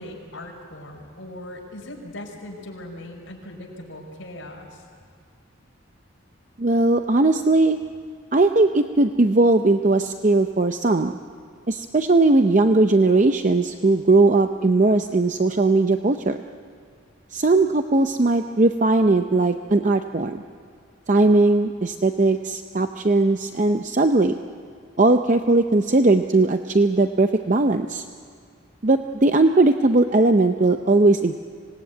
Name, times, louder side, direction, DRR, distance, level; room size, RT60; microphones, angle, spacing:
voice 1, 0.0-4.8, left 1 dB, 65° left, -1 dB, 5.4 m, -39 dB
voice 2, 6.6-7.8 8.3-11.1 11.7-16.4 17.3-20.4 21.1-24.4 25.0-28.0 28.8-31.3, right 2 dB, 35° right, 7 dB, 0.6 m, -19 dB
25.5 x 18.5 x 9.4 m, 2.2 s
head